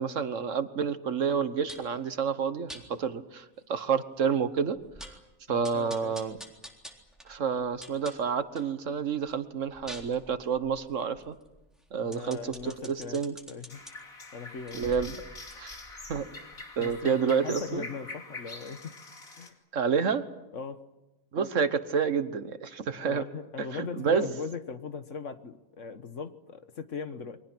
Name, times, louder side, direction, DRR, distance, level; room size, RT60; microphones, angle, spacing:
voice 1, 0.0-5.2 5.5-6.4 7.2-11.3 11.9-12.9 13.1-13.4 14.7-15.2 15.6-15.8 16.1-16.3 16.8-17.9 19.7-20.2 21.3-23.2 23.7-24.3, right 6 dB, 65° right, 11 dB, 1.5 m, -29 dB
sound 1, 1.7-2.0 2.7-2.8 3.4-3.5 3.8-3.9 4.3-4.4 4.7-5.3 5.6-8.7 9.1-13.9 14.5-17.2 17.6-17.7, right 1 dB, ahead, 3.7 m, -47 dB
voice 2, 5.5-6.2 12.0-13.2 13.5-13.8 14.3-14.8 16.8-18.9 19.4-19.6 20.5-20.8 22.9-27.4, left 5 dB, 65° left, 10 dB, 1.7 m, -39 dB
sound 2, 13.7-19.5, left 3 dB, 90° left, 3.2 m, -44 dB
29.5 x 23.5 x 6.2 m, 0.98 s
omnidirectional pair, 1.4 m